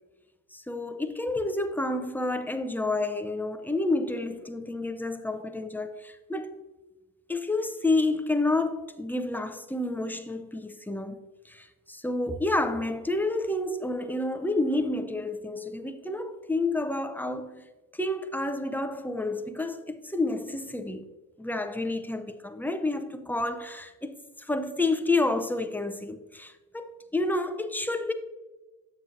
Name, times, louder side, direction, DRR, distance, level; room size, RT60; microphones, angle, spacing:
voice 1, 0.5-6.5 7.3-17.7 17.9-21.0 21.4-28.1, left 2 dB, 5° left, 0.6 m, -29 dB
7.2 x 7.1 x 2.6 m
cardioid pair, 65°, 37 cm